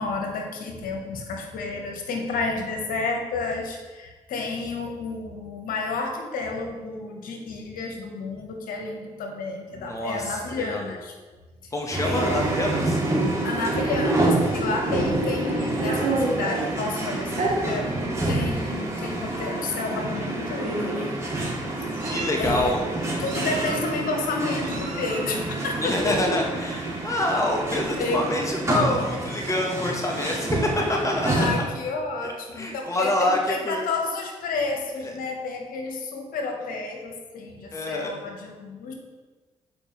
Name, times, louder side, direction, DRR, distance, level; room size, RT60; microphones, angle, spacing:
voice 1, 0.0-11.1 11.6-11.7 12.0-12.4 13.4-21.1 21.8-22.8 23.2-26.4 28.0-28.3 31.2-38.9, left 3 dB, 75° left, 2 dB, 1.1 m, -31 dB
voice 2, 9.8-10.8 11.7-13.0 22.0-22.8 25.8-31.3 31.6-31.7 32.5-33.8 37.7-38.2, left 1 dB, 20° left, 0 dB, 1.2 m, -26 dB
sound 1, 11.9-31.5, right 2 dB, 20° right, 2.1 m, -28 dB
Meow, 15.0-16.7 17.3-17.5 18.4-18.5 18.9-19.1 20.1-20.2 20.6-21.1 21.7-22.4 23.3-24.0 24.6-25.3, right 3 dB, 65° right, 1.5 m, -30 dB
7.7 x 4.8 x 3.1 m, 1.3 s
supercardioid pair, 45°, 15 cm